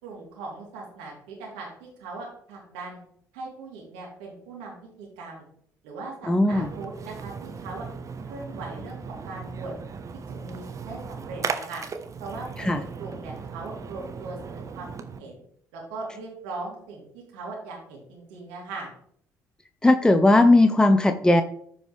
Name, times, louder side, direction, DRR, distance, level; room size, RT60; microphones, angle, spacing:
voice 1, 0.0-3.0 3.3-5.4 5.8-7.9 8.2-9.7 10.3-11.8 12.2-14.9 15.2-15.4 15.7-17.0 17.3-18.9, right 3 dB, 70° right, -3 dB, 3.1 m, -39 dB
voice 2, 6.3-6.7 12.6-12.8 19.8-21.4, left 2 dB, 10° left, 8 dB, 0.7 m, -18 dB
Splash splatter, 6.5-15.2, right 5 dB, 40° right, 1.1 m, -37 dB
14.5 x 5.0 x 3.4 m, 0.64 s
hypercardioid pair, 55°, 9 cm